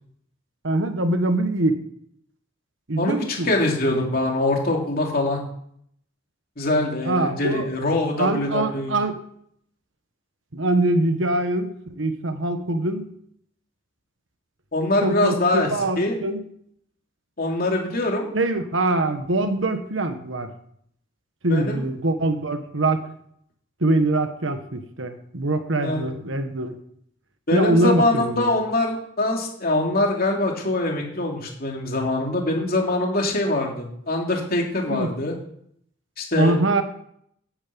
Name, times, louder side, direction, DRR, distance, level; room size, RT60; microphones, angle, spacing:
voice 1, 0.6-1.8 2.9-3.6 7.1-7.7 8.2-9.2 10.5-13.0 15.0-16.4 18.3-20.5 21.4-23.1 23.8-26.8 27.5-28.6 34.9-35.1 36.3-36.8, right 2 dB, 75° right, 8 dB, 1.4 m, -23 dB
voice 2, 3.0-5.4 6.6-8.9 14.7-15.7 16.0-16.2 17.4-18.3 21.5-21.8 25.8-26.0 27.5-35.3 36.2-36.6, left 2 dB, 50° left, 0 dB, 3.1 m, -23 dB
9.8 x 9.5 x 8.7 m, 0.70 s
head